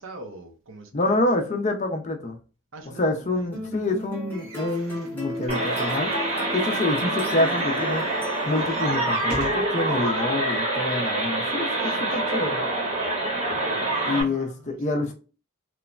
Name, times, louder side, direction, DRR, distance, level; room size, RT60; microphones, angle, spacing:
voice 1, 0.0-1.2 2.7-3.9 10.0-10.2 11.8-12.1 13.7-15.1, right 2 dB, 65° right, 0.6 m, -44 dB
voice 2, 0.9-2.4 2.9-6.1 6.5-8.0 8.5-12.6 14.1-15.1, left 2 dB, 35° left, 0.4 m, -27 dB
sound 1, 3.5-8.9, left 1 dB, 10° left, 0.9 m, -37 dB
sound 2, 4.3-9.7 10.4-10.5 10.7-10.8, right 3 dB, 90° right, 1.0 m, -42 dB
sound 3, 5.5-14.2, right 2 dB, 30° right, 0.8 m, -26 dB
3.0 x 2.0 x 2.4 m
head